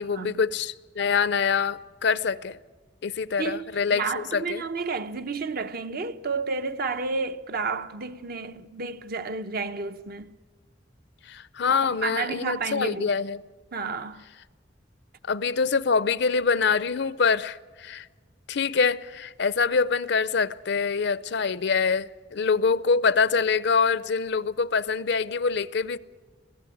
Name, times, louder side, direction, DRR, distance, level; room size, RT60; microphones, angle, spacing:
voice 1, 0.0-2.6 3.0-4.6 11.3-13.4 15.3-18.1 18.5-26.0, left 5 dB, 65° left, 0.6 m, -25 dB
voice 2, 3.4-10.3 11.7-13.1 13.7-14.2, right 4 dB, 55° right, 0.8 m, -31 dB
22.0 x 15.5 x 9.8 m
head